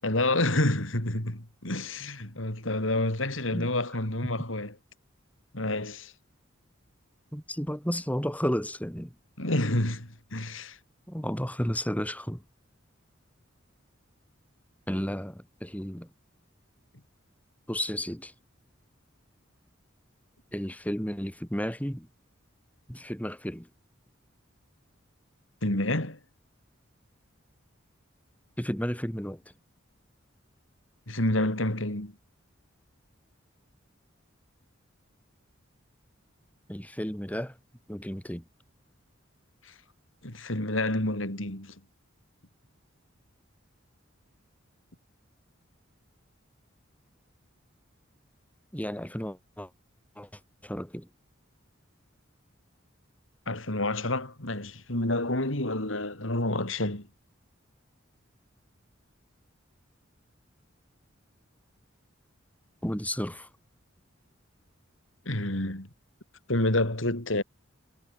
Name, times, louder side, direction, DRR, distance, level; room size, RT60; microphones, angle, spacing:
voice 1, 0.0-4.7 5.5-6.1 9.4-10.8 25.6-26.2 31.1-32.1 39.6-39.7 40.2-41.7 53.5-57.1 65.2-65.9 66.5-67.4, left 1 dB, 70° left, 4.9 m, -29 dB
voice 2, 7.3-9.1 11.1-12.4 14.9-16.1 17.7-18.3 20.5-22.1 22.9-23.7 28.6-29.4 36.7-37.6 37.9-38.4 48.7-49.7 50.2-51.1 62.8-63.5, equal, 10° left, 7.2 m, -32 dB
head